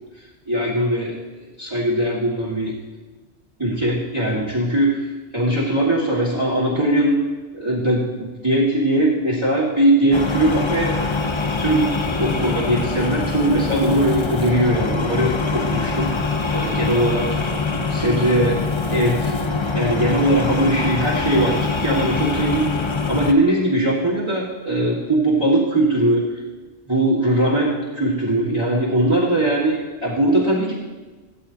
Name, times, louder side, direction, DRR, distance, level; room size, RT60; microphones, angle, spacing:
voice 1, 0.5-1.2 1.6-2.8 3.6-5.1 5.3-7.2 7.5-11.0 11.6-17.3 17.9-18.6 18.9-19.3 19.7-22.7 23.1-26.2 26.9-30.7, right 1 dB, 25° right, -9 dB, 1.9 m, -20 dB
sound 1, 10.1-23.3, left 4 dB, 30° left, 0.6 m, -24 dB
16.5 x 13.0 x 2.8 m, 1.3 s
omnidirectional pair, 1.2 m